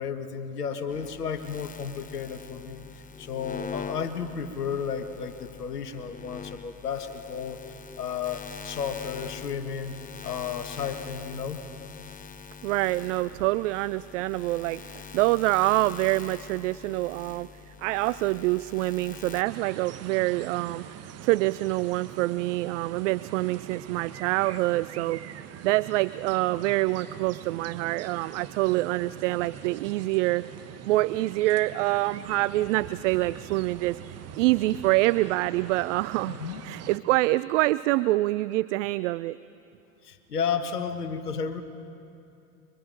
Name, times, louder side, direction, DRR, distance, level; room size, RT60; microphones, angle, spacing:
voice 1, 0.0-7.6 8.0-9.9 10.2-11.6 36.3-36.6 40.0-41.6, left 6 dB, 80° left, 8 dB, 1.5 m, -33 dB
sound 1, 0.9-19.4, left 6 dB, 15° left, 1.1 m, -44 dB
voice 2, 12.6-17.5 17.8-20.8 21.2-25.2 25.6-30.5 30.8-34.0 34.4-36.4 36.6-39.4, right 19 dB, 55° right, 18 dB, 0.5 m, -26 dB
sound 2, 19.4-37.0, right 10 dB, 35° right, 1.1 m, -43 dB
24.5 x 24.0 x 5.3 m, 2.7 s
figure-of-eight pair, 80°, 46 cm